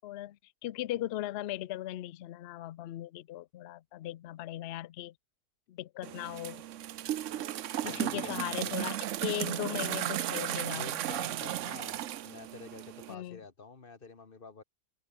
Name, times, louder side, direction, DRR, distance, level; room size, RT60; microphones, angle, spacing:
voice 1, 0.0-5.1 5.7-6.6 7.3-7.4 7.8-11.0 13.1-13.4, left 14 dB, 70° left, 0.6 m, -38 dB
sound 1, 6.0-13.1, right 12 dB, 60° right, 0.9 m, -35 dB
voice 2, 7.8-8.7 10.5-14.6, left 4 dB, 35° left, 1.8 m, -48 dB
omnidirectional pair, 1.6 m